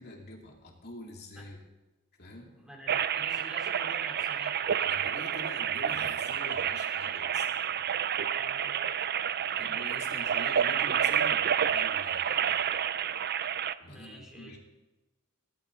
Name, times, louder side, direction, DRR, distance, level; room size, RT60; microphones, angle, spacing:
voice 1, 0.0-1.6 2.2-2.5 4.8-7.4 7.8-7.9 9.6-12.8 13.8-14.6, left 1 dB, 45° left, 0 dB, 2.8 m, -46 dB
voice 2, 2.5-5.0 8.4-8.9 9.4-9.8 13.8-14.5, equal, 5° right, -1 dB, 3.6 m, -49 dB
sound 1, 2.9-13.7, right 9 dB, 45° right, 0.5 m, -29 dB
18.5 x 13.0 x 4.0 m, 1.1 s
head